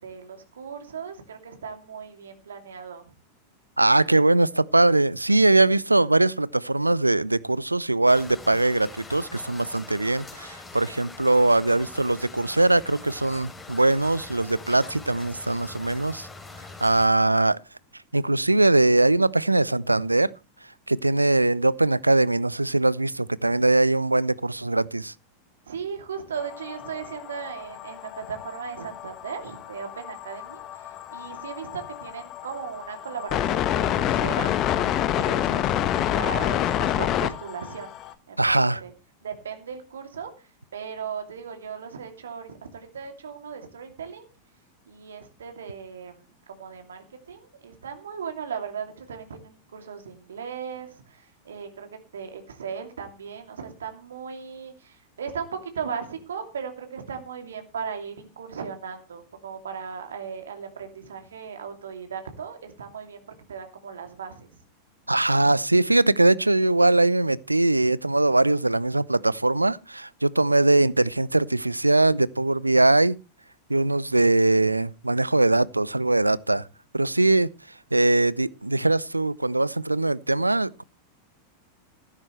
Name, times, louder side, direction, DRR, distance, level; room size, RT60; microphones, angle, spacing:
voice 1, 0.0-3.1 25.7-37.9 38.3-38.9 39.2-44.3 44.9-51.9 52.1-63.2 63.5-64.5, right 6 dB, 65° right, 2.7 m, -37 dB
voice 2, 3.8-16.3 16.8-17.6 18.1-20.3 20.9-25.1 38.4-38.8 65.1-73.2 73.7-76.6 76.9-77.5 77.9-80.8, right 2 dB, 85° right, 0.5 m, -21 dB
sound 1, 8.1-17.1, left 3 dB, 15° left, 3.2 m, -43 dB
sound 2, 26.3-38.1, left 11 dB, 35° left, 1.2 m, -28 dB
15.0 x 12.5 x 3.2 m
figure-of-eight pair, 90°, 0 cm